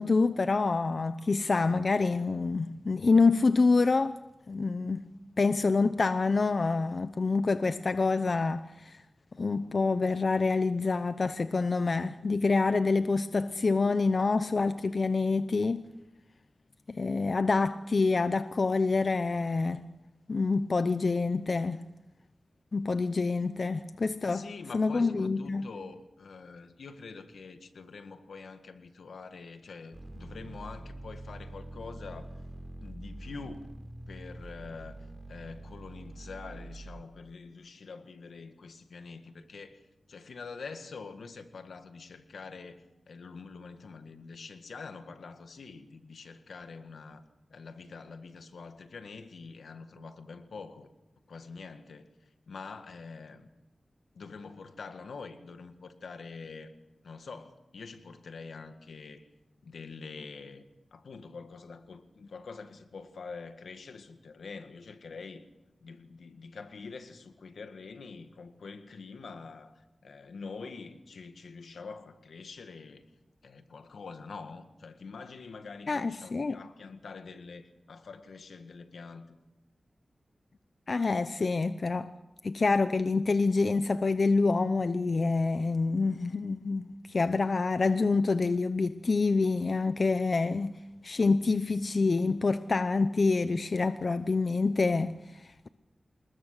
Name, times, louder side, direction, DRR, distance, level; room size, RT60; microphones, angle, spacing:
voice 1, 0.0-4.2 4.5-5.0 5.4-9.0 9.4-15.9 16.9-19.8 20.3-21.8 22.7-24.4 24.7-25.7 75.9-76.6 80.9-82.1 82.4-90.8 91.0-95.7, left 3 dB, 60° left, 0.8 m, -27 dB
voice 2, 24.3-32.3 32.8-33.7 34.1-35.0 35.3-39.8 40.1-42.8 43.1-47.2 47.5-50.9 51.3-53.5 54.1-56.7 57.0-59.3 59.6-65.4 65.8-73.0 73.4-79.4, left 4 dB, 90° left, 1.8 m, -45 dB
sound 1, 29.9-37.0, right 1 dB, 15° right, 5.4 m, -45 dB
26.5 x 21.0 x 6.7 m
cardioid pair, 50°, 0 cm